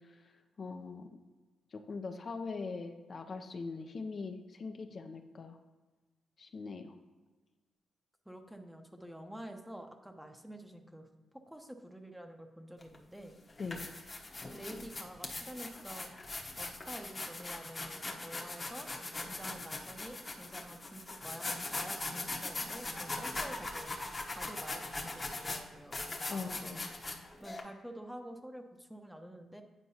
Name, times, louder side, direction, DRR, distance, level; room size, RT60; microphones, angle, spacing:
voice 1, 0.6-1.1 1.7-5.6 6.4-6.9 13.6-13.9 26.3-26.9, left 4 dB, 50° left, 6 dB, 0.5 m, -41 dB
voice 2, 8.3-11.1 11.3-13.4 14.5-16.1 16.6-18.9 19.3-26.8 27.4-29.6, right 1 dB, 5° right, 5 dB, 0.6 m, -48 dB
sound 1, 12.8-13.0 13.5-27.6, left 2 dB, 30° left, 0.9 m, -40 dB
9.2 x 4.5 x 2.8 m, 1.3 s
cardioid pair, 75°, 0 cm